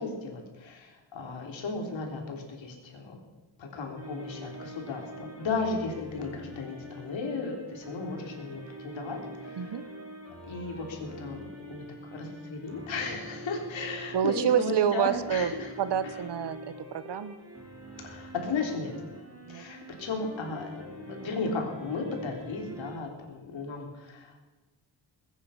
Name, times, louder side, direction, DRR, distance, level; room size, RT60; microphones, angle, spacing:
voice 1, 0.0-3.2 3.6-9.8 10.4-11.8 12.1-15.7 16.0-16.2 18.0-18.9 19.5-24.4, left 3 dB, 85° left, 2 dB, 3.6 m, -35 dB
sound 1, 4.0-23.0, right 1 dB, 30° right, 3.7 m, -45 dB
voice 2, 14.1-15.5 15.8-17.4 19.5-19.6, right 8 dB, 65° right, 14 dB, 1.0 m, -27 dB
20.5 x 10.0 x 5.7 m, 1.2 s
wide cardioid pair, 140°, 45 cm